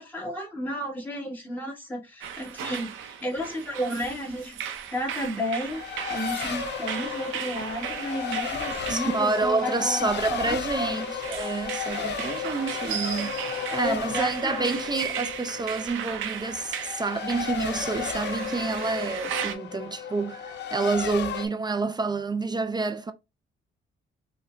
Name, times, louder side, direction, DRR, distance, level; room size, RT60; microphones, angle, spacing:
voice 1, 0.0-4.6 4.9-11.1 13.8-14.8, equal, 10° left, 1.6 m, -33 dB
sound 1, 2.2-19.5, right 8 dB, 80° right, 0.6 m, -36 dB
Race car auto racing, 5.7-21.5, left 7 dB, 60° left, 0.6 m, -34 dB
voice 2, 8.9-23.1, right 3 dB, 20° right, 0.4 m, -28 dB
5.3 x 2.2 x 2.5 m
cardioid pair, 90°, 20 cm